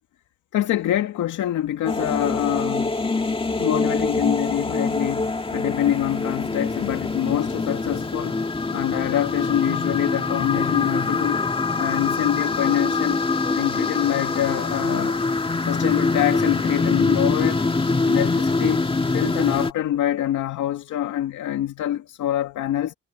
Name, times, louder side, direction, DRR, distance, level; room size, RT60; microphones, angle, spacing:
voice 1, 0.5-3.0 3.6-8.4 8.7-11.5 11.8-13.2 13.5-15.2 15.6-17.6 18.0-18.8 19.1-22.9, left 12 dB, 80° left, 2.3 m, -25 dB
sound 1, 1.9-19.7, left 3 dB, 20° left, 1.9 m, -24 dB
cardioid pair, 90°, 30 cm